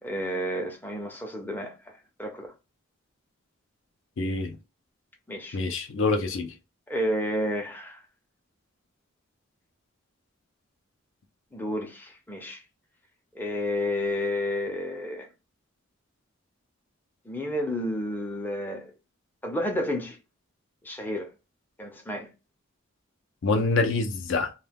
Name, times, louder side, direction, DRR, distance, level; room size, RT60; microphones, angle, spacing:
voice 1, 0.0-2.5 5.3-5.6 6.9-8.0 11.5-12.6 13.3-15.3 17.3-18.9 19.4-20.2 20.8-21.3 21.8-22.3, left 1 dB, 10° left, 0.5 m, -31 dB
voice 2, 4.2-4.6 5.5-6.5 23.4-24.5, left 3 dB, 65° left, 0.4 m, -26 dB
2.2 x 2.1 x 3.4 m
head